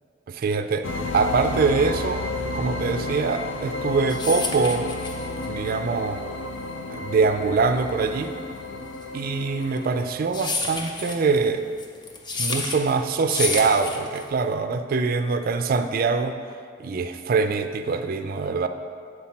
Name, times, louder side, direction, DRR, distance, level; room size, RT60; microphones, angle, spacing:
voice 1, 0.3-0.9 1.1-2.2 2.5-5.0 5.5-6.2 6.9-8.3 9.1-11.7 12.4-16.3 16.8-18.7, right 4 dB, 50° right, 8 dB, 0.4 m, -23 dB
sound 1, 0.8-10.1, left 2 dB, 85° left, 0.6 m, -32 dB
sound 2, 3.7-14.5, left 3 dB, 25° left, 0.7 m, -31 dB
7.9 x 4.2 x 5.8 m, 2.1 s
head